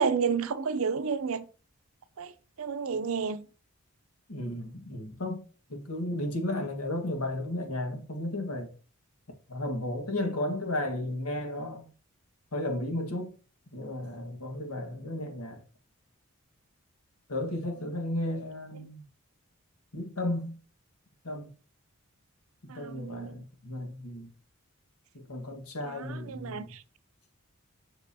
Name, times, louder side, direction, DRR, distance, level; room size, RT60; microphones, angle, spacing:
voice 1, 0.0-1.5 2.2-2.3 2.6-3.5 22.7-23.4 25.8-26.8, right 5 dB, 70° right, 0.5 m, -31 dB
voice 2, 4.3-5.4 5.7-8.7 9.5-11.9 12.5-13.3 13.7-15.6 17.3-19.0 19.9-20.5 21.2-21.5 22.7-24.3 25.1-26.7, left 1 dB, 85° left, 1.6 m, -34 dB
7.4 x 6.2 x 2.8 m
head